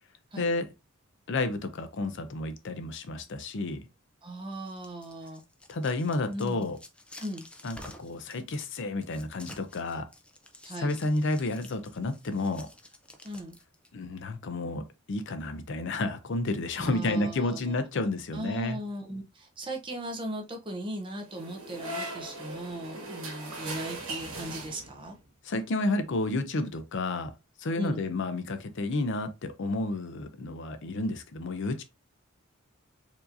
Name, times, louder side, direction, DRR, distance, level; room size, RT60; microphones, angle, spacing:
voice 1, 0.4-0.7 1.3-3.8 5.7-6.8 7.6-10.1 10.8-12.7 13.9-14.8 15.1-18.8 25.4-27.3 27.6-31.8, left 2 dB, 60° left, 0.5 m, -31 dB
voice 2, 4.2-5.4 6.3-6.7 7.2-7.5 10.6-11.0 13.2-13.6 16.8-17.7 18.3-25.2 27.8-28.0, right 1 dB, 25° right, 0.7 m, -38 dB
sound 1, 4.5-13.9, left 1 dB, 5° left, 0.4 m, -51 dB
sound 2, 21.3-25.2, right 2 dB, 80° right, 1.5 m, -39 dB
4.6 x 2.8 x 2.6 m
head